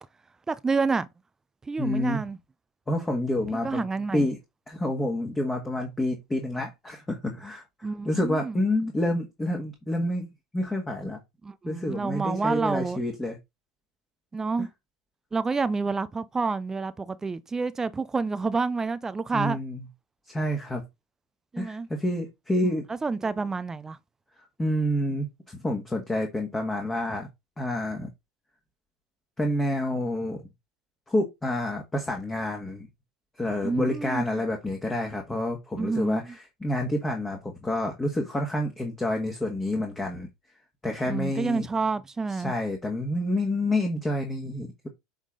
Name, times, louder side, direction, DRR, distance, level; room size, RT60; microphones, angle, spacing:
voice 1, 0.5-1.1 1.7-2.4 3.5-4.3 7.8-8.6 11.4-13.0 14.3-14.7 15.3-19.6 21.5-21.9 22.6-24.0 33.6-34.2 35.7-36.4 41.0-42.5, right 4 dB, 15° right, 0.5 m, -29 dB
voice 2, 1.8-2.2 2.9-3.8 4.1-4.4 4.7-7.6 8.0-10.3 10.5-11.2 11.7-13.4 19.3-19.8 20.3-20.8 21.6-22.8 24.6-27.3 27.6-28.1 29.4-30.4 31.1-32.9 33.4-36.3 36.6-40.3 40.8-41.7 42.4-44.9, left 1 dB, 15° left, 1.7 m, -28 dB
8.1 x 3.7 x 3.8 m
hypercardioid pair, 90°, 3 cm